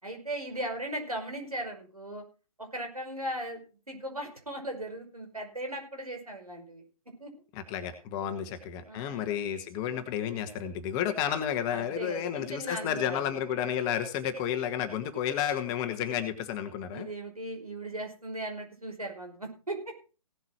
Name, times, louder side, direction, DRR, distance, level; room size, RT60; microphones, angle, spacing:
voice 1, 0.0-2.2 2.6-3.6 3.9-6.8 7.2-7.3 8.2-8.5 8.9-9.3 11.7-13.5 15.0-15.1 16.9-19.8, right 1 dB, 85° right, 4 dB, 5.2 m, -38 dB
voice 2, 7.5-17.1, left 9 dB, 20° left, 8 dB, 1.5 m, -31 dB
17.0 x 8.1 x 4.6 m, 0.35 s
figure-of-eight pair, 135°, 19 cm